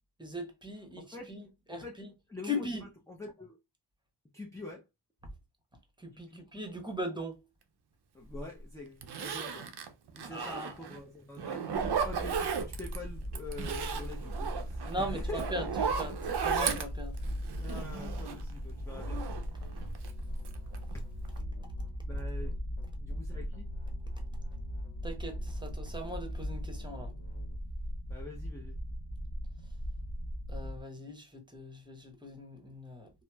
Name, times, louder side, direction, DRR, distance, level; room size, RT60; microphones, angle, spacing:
voice 1, 0.2-2.1 2.4-2.8 6.0-7.3 10.3-10.7 14.8-17.2 25.0-27.1 30.5-33.1, equal, 10° right, 0.9 m, -39 dB
voice 2, 1.7-2.0 2.3-2.7 3.1-3.6 4.3-4.8 6.1-6.5 8.1-9.7 10.1-15.4 17.6-19.2 20.9-21.0 22.1-22.6 23.0-23.7 28.1-28.8, left 2 dB, 5° left, 0.5 m, -45 dB
Zipper (clothing), 8.3-8.4 9.0-11.0 11.4-13.0 13.3-18.5 18.9-20.1 20.4-20.9 21.2-21.4, right 6 dB, 55° right, 0.6 m, -35 dB
sound 1, 11.7-30.8, equal, 45° left, 1.0 m, -39 dB
sound 2, 18.7-27.6, left 3 dB, 70° left, 0.9 m, -49 dB
2.9 x 2.0 x 2.2 m
cardioid pair, 55°, 47 cm